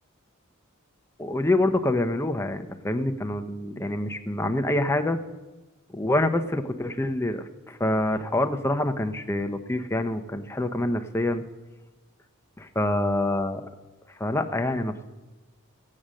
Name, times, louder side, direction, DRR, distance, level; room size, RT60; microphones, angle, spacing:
voice 1, 1.2-5.2 5.9-11.4 12.6-13.6 14.2-15.1, left 1 dB, 10° left, 6 dB, 0.7 m, -26 dB
15.5 x 8.6 x 6.4 m, 1.1 s
head